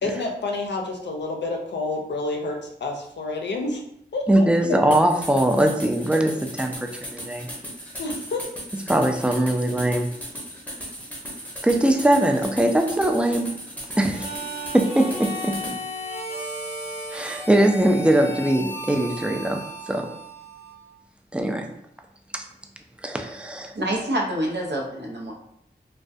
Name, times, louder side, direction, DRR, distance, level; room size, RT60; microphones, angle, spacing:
voice 1, 0.0-3.8 4.1-4.5 8.0-8.4, left 2 dB, 80° left, 0.5 m, -29 dB
voice 2, 4.3-7.5 8.7-10.1 11.6-13.5 14.0-14.3 14.7-15.5 17.1-19.6 19.9-20.1 21.3-21.7 22.3-22.4 23.0-23.7, right 1 dB, 5° right, 0.3 m, -21 dB
sound 1, 4.9-15.8, equal, 10° left, 0.7 m, -37 dB
Harmonica, 14.0-20.9, equal, 35° right, 0.7 m, -35 dB
voice 3, 23.7-25.3, right 1 dB, 75° right, 0.6 m, -26 dB
2.3 x 2.1 x 2.5 m
wide cardioid pair, 60°, 18 cm